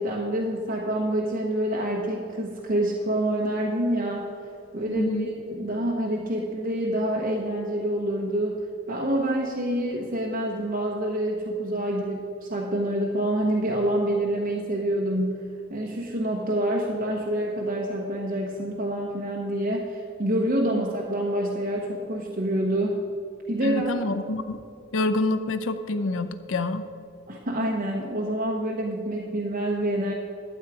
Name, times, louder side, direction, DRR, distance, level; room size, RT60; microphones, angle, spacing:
voice 1, 0.0-4.3 4.7-23.0 23.5-24.0 27.3-30.1, right 1 dB, 45° right, -2 dB, 1.0 m, -27 dB
voice 2, 4.9-5.3 20.7-20.8 23.6-24.6 24.9-26.8, left 2 dB, 80° left, 10 dB, 0.6 m, -27 dB
12.5 x 8.0 x 4.9 m, 2.6 s
head